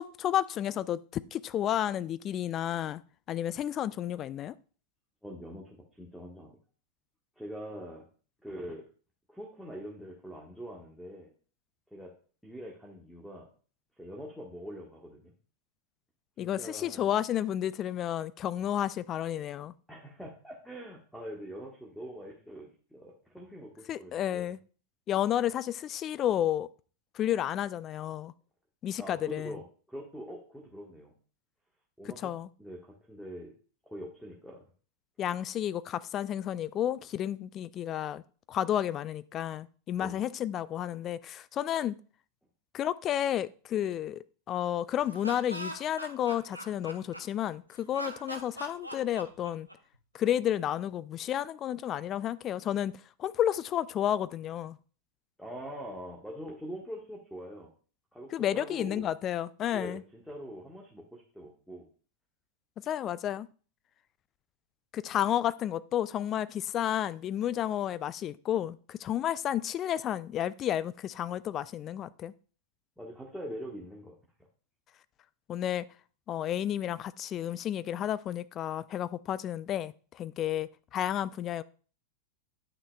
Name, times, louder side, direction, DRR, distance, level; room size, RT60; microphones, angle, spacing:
voice 1, 0.0-3.0 3.3-4.5 16.4-19.7 23.9-24.6 25.1-26.7 27.1-28.3 28.8-29.6 32.0-32.5 35.2-38.2 38.5-42.0 42.7-49.7 50.1-54.8 58.3-60.0 62.8-63.5 64.9-72.3 75.5-75.9 76.3-81.6, left 11 dB, 30° left, 0.3 m, -31 dB
voice 2, 5.2-6.5 7.4-8.1 8.4-8.9 9.3-11.3 11.9-12.1 12.4-13.5 14.0-15.3 16.4-17.1 19.9-24.5 29.0-31.1 32.0-32.3 32.6-33.5 33.8-34.6 40.0-40.2 55.4-57.7 58.1-59.1 59.7-61.9 73.0-74.1, equal, ahead, 1.4 m, -43 dB
Laughter, 45.0-47.5 47.9-50.0, right 1 dB, 85° right, 0.8 m, -41 dB
9.9 x 6.2 x 2.3 m
figure-of-eight pair, 90°, 0 cm